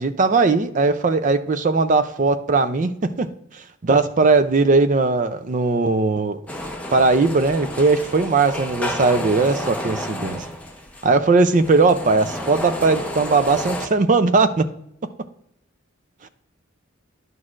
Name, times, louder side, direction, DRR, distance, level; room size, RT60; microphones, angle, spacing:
voice 1, 0.0-3.3 3.5-6.4 6.9-10.5 11.0-14.7, right 3 dB, 35° right, 11 dB, 0.4 m, -19 dB
sound 1, 6.5-13.9, left 1 dB, 5° left, 0.6 m, -31 dB
11.0 x 6.2 x 2.5 m, 0.75 s
head